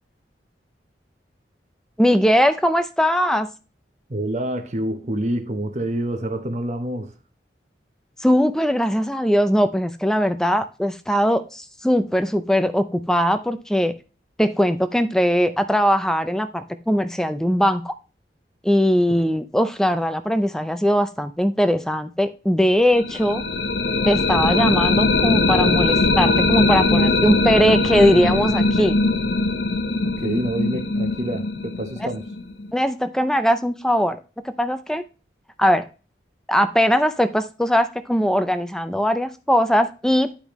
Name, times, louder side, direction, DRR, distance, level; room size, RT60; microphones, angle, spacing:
voice 1, 2.0-3.5 8.2-13.9 14.4-17.9 18.6-23.4 24.1-29.0 32.0-32.1 32.7-34.2 34.4-35.0 35.6-35.9 36.5-40.3, equal, 5° left, 0.5 m, -20 dB
voice 2, 4.1-7.1 19.1-19.2 30.0-32.3, right 1 dB, 40° right, 0.8 m, -27 dB
sound 1, 22.9-32.7, left 3 dB, 80° left, 0.9 m, -21 dB
10.0 x 5.2 x 3.0 m
head